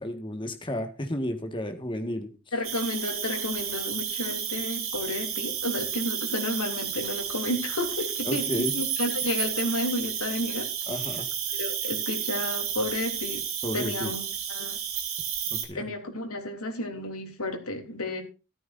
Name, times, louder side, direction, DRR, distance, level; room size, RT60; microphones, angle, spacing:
voice 1, 0.0-2.3 8.3-8.7 10.9-11.3 13.6-14.1 15.5-15.8, left 1 dB, 20° left, 6 dB, 1.7 m, -32 dB
voice 2, 2.5-10.7 11.1-11.2 11.5-13.5 13.7-14.2 14.5-14.8 15.7-18.2, left 1 dB, 80° left, 5 dB, 3.4 m, -32 dB
Cricket, 2.6-15.6, right 8 dB, 60° right, 3.6 m, -32 dB
14.0 x 13.0 x 2.6 m, 0.31 s
head